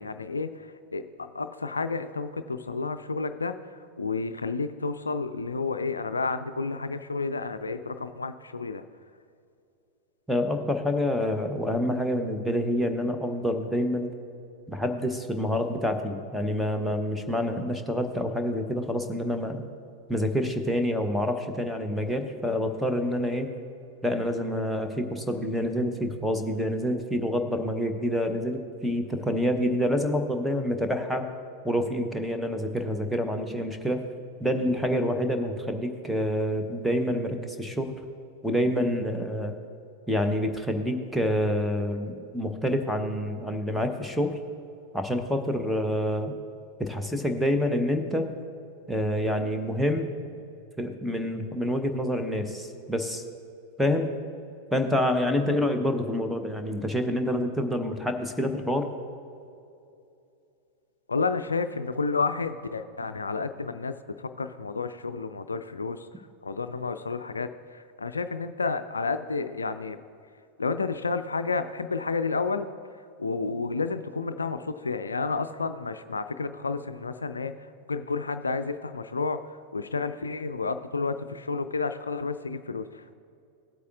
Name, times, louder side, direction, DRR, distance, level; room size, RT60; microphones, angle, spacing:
voice 1, 0.0-8.8 61.1-66.1 66.4-70.0 70.6-72.7 73.2-77.5 77.9-83.1, left 4 dB, 75° left, 10 dB, 0.3 m, -31 dB
voice 2, 10.3-14.1 14.7-19.6 20.1-23.5 24.0-31.3 31.6-34.0 34.4-38.0 38.4-39.6 40.1-44.4 44.9-46.3 46.8-48.3 48.9-50.1 50.8-53.2 53.8-54.1 54.7-58.9, equal, ahead, 5 dB, 0.8 m, -27 dB
17.0 x 8.2 x 2.4 m, 2.6 s
figure-of-eight pair, 90°, 0 cm